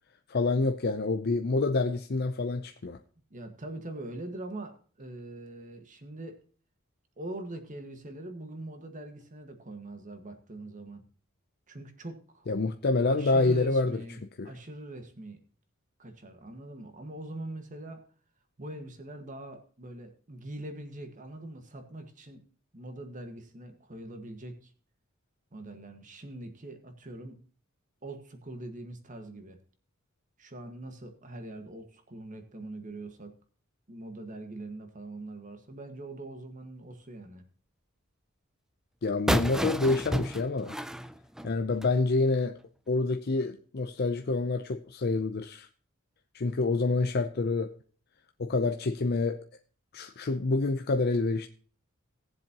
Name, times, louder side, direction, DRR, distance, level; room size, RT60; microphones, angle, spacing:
voice 1, 0.3-3.0 12.5-14.0 14.4-14.5 39.0-40.8 41.4-42.6 42.9-45.7 46.3-47.8 48.4-49.5 49.9-51.5, left 3 dB, 50° left, 0.6 m, -27 dB
voice 2, 3.3-6.3 7.2-11.1 11.7-12.5 13.1-15.4 16.0-18.0 18.6-22.4 22.7-24.7 25.5-27.4 28.0-29.6 30.4-33.3 33.9-37.4, right 1 dB, 40° right, 1.6 m, -43 dB
sound 1, 39.3-42.0, equal, 5° right, 0.4 m, -31 dB
18.0 x 7.5 x 2.9 m
head